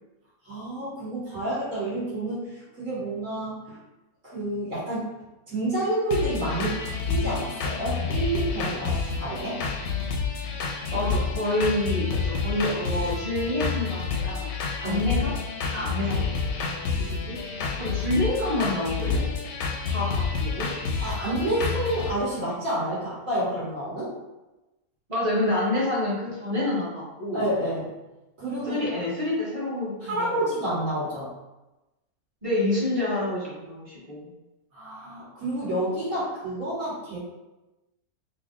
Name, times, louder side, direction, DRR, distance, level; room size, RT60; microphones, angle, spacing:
voice 1, 0.4-3.8 4.2-5.1 5.5-9.6 14.8-15.0 21.0-24.1 27.3-27.9 28.4-29.0 30.0-31.3 34.7-37.2, right 1 dB, 65° right, -9 dB, 1.6 m, -29 dB
sound 1, 6.1-22.1, left 5 dB, 65° left, 0.8 m, -29 dB
voice 2, 10.9-14.6 14.8-15.3 15.7-16.4 17.0-17.4 17.8-19.2 19.8-20.7 25.1-27.4 28.6-30.4 30.7-30.9 32.4-34.3, left 1 dB, 25° right, -7 dB, 1.1 m, -28 dB
3.2 x 2.6 x 3.7 m, 1.0 s
omnidirectional pair, 1.6 m